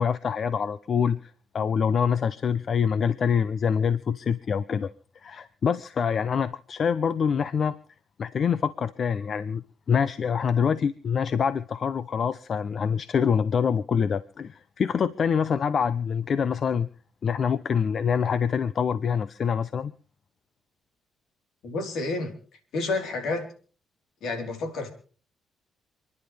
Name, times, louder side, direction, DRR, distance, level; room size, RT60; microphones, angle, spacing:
voice 1, 0.0-4.9 5.2-7.8 8.2-16.9 17.2-19.9, left 7 dB, 50° left, 0.7 m, -25 dB
voice 2, 21.6-22.4 22.7-23.5 24.2-24.9, left 3 dB, 75° left, 4.0 m, -29 dB
28.5 x 11.0 x 3.4 m
cardioid pair, 90°, 0 cm